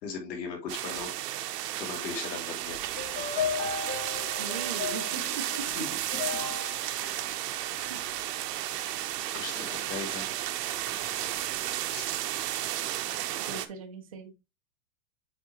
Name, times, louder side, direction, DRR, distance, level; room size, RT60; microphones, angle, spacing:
voice 1, 0.0-1.1 1.8-2.8 5.8-5.9 7.6-8.0 9.3-10.3 11.9-12.0, left 5 dB, 85° left, 1 dB, 3.0 m, -38 dB
sound 1, 0.7-13.7, right 13 dB, 70° right, 1.0 m, -33 dB
sound 2, 3.0-8.3, left 6 dB, 20° left, 1.9 m, -36 dB
voice 2, 4.4-5.4 7.9-8.0 13.4-14.3, right 5 dB, 25° right, 4 dB, 0.3 m, -40 dB
8.1 x 4.0 x 2.9 m, 0.24 s
supercardioid pair, 175°, 49 cm